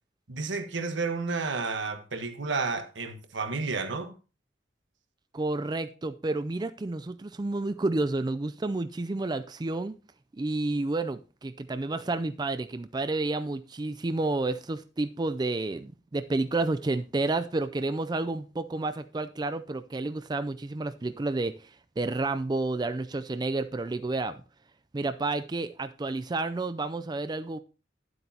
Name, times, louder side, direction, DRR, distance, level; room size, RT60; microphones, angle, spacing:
voice 1, 0.3-4.1, right 4 dB, 90° right, 1.3 m, -31 dB
voice 2, 5.3-9.9 10.4-24.4 24.9-27.6, right 2 dB, 25° right, 0.4 m, -30 dB
11.5 x 7.9 x 2.8 m
head